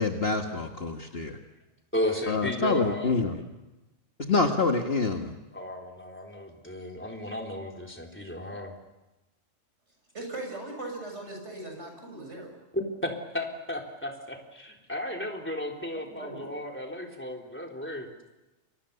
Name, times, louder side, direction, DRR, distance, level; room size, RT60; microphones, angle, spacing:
voice 1, 0.0-1.4 2.3-3.4 4.2-5.3, left 3 dB, 50° left, 3 dB, 1.8 m, -26 dB
voice 2, 1.9-3.1 5.5-8.8 12.7-18.1, left 1 dB, 10° left, 1 dB, 3.9 m, -34 dB
voice 3, 10.1-12.6 15.9-16.5, right 2 dB, 60° right, 2 dB, 7.4 m, -39 dB
29.5 x 24.5 x 7.0 m, 1.0 s
omnidirectional pair, 1.4 m